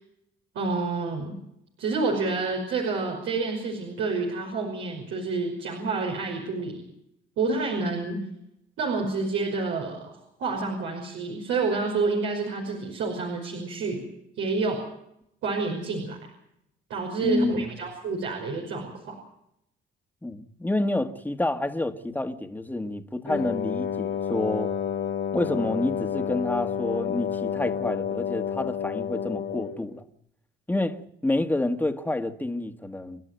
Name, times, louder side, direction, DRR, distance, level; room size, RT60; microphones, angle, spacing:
voice 1, 0.5-1.3 1.8-6.8 7.4-8.2 8.8-14.0 14.4-14.8 15.4-16.2 16.9-19.2, right 3 dB, 85° right, 5.5 m, -28 dB
voice 2, 17.2-17.7 20.2-24.7 25.3-30.0 30.7-33.2, left 2 dB, 10° left, 1.9 m, -28 dB
Wind instrument woodwind instrument, 23.3-29.9, left 8 dB, 65° left, 2.5 m, -30 dB
30.0 x 11.5 x 9.2 m
cardioid pair, 90°, 20 cm